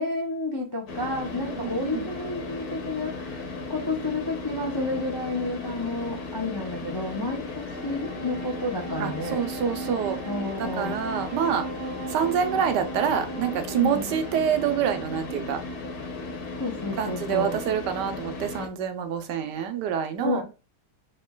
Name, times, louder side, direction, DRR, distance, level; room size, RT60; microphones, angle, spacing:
voice 1, 0.0-9.4 10.3-11.0 13.8-14.1 16.6-17.6 20.2-20.4, left 2 dB, 30° left, 0.4 m, -30 dB
Car / Idling, 0.9-18.7, left 3 dB, 60° left, 1.4 m, -36 dB
voice 2, 1.4-2.1 7.2-7.3 9.0-10.2 10.6-11.7 12.1-15.6 17.0-20.4, right 8 dB, 80° right, 1.3 m, -27 dB
Wind instrument woodwind instrument, 7.5-17.0, right 5 dB, 60° right, 1.1 m, -40 dB
4.4 x 3.7 x 2.3 m
omnidirectional pair, 1.8 m